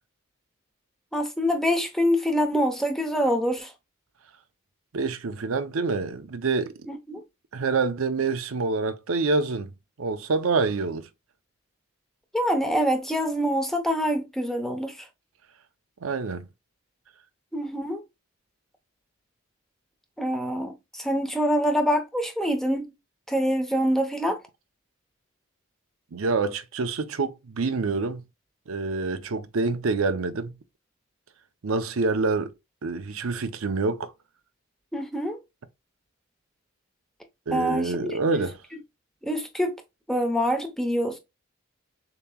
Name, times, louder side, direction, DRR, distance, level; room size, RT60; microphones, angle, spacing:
voice 1, 1.1-3.7 6.9-7.2 12.3-15.1 17.5-18.0 20.2-22.9 23.3-24.4 34.9-35.4 37.5-38.5 39.2-39.8 40.1-41.2, equal, ahead, 0.8 m, -25 dB
voice 2, 4.9-6.7 7.5-9.7 10.0-11.1 16.0-16.5 26.1-28.2 28.7-30.5 31.6-32.5 32.8-34.1 37.5-38.6, right 4 dB, 85° right, 0.6 m, -26 dB
6.8 x 2.9 x 2.3 m
head